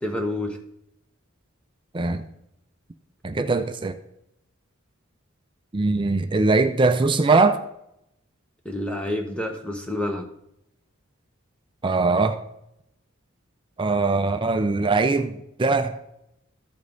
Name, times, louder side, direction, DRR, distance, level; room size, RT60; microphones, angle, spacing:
voice 1, 0.0-0.6 8.6-10.3, left 1 dB, 5° left, 3 dB, 1.1 m, -28 dB
voice 2, 3.2-3.9 5.7-7.6 11.8-12.4 13.8-15.3 15.6-16.0, right 3 dB, 25° right, 8 dB, 0.5 m, -21 dB
14.0 x 5.2 x 4.0 m, 0.79 s
head